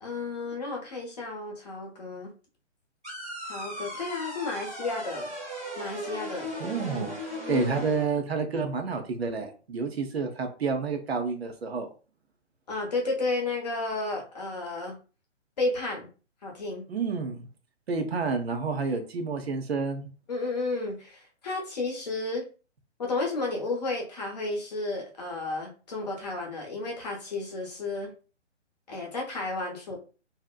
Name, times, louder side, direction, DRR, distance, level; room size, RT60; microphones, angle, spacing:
voice 1, 0.0-2.3 3.4-5.3 5.8-6.5 7.5-7.7 12.7-15.0 15.6-16.1 16.4-16.8 20.3-22.4 23.0-28.1 28.9-30.0, left 3 dB, 35° left, -1 dB, 0.8 m, -32 dB
sound 1, 3.0-8.0, equal, 5° right, 0.4 m, -37 dB
voice 2, 6.6-7.2 7.5-11.9 16.9-17.5 17.9-20.1, right 4 dB, 60° right, 5 dB, 0.6 m, -29 dB
2.7 x 2.0 x 2.2 m, 0.35 s
figure-of-eight pair, 135°, 36 cm